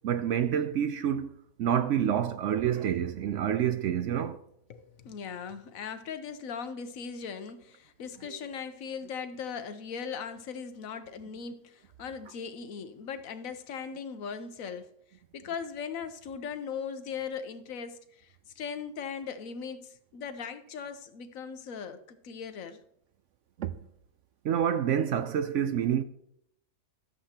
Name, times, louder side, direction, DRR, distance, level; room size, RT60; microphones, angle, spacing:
voice 1, 0.0-1.3 1.6-4.4 8.2-8.4 23.6-23.8 24.4-26.0, right 9 dB, 65° right, 0.8 m, -28 dB
voice 2, 4.7-14.9 15.3-22.8, left 6 dB, 70° left, 1.1 m, -39 dB
13.5 x 7.6 x 2.9 m
omnidirectional pair, 1.6 m